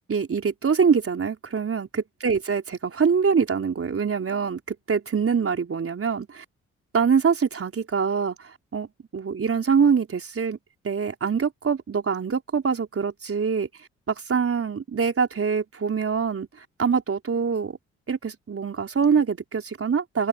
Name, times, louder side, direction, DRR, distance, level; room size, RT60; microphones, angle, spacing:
voice 1, 0.1-6.4 6.9-8.9 9.1-10.6 10.8-13.7 14.1-16.5 16.8-17.8 18.1-20.3, right 6 dB, 45° right, 4.3 m, -24 dB
hypercardioid pair, 45°, 32 cm